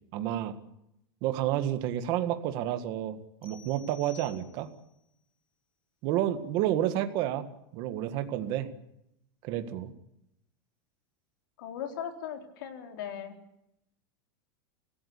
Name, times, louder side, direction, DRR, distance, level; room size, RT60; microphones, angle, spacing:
voice 1, 0.1-0.6 1.2-4.7 6.0-7.5 7.7-8.7 9.4-9.9, right 12 dB, 35° right, 8 dB, 1.8 m, -30 dB
sound 1, 3.4-5.0, left 7 dB, 85° left, 7.0 m, -53 dB
voice 2, 11.6-13.3, left 9 dB, 60° left, 4 dB, 4.2 m, -38 dB
25.5 x 17.5 x 8.4 m, 0.84 s
supercardioid pair, 180°, 13 cm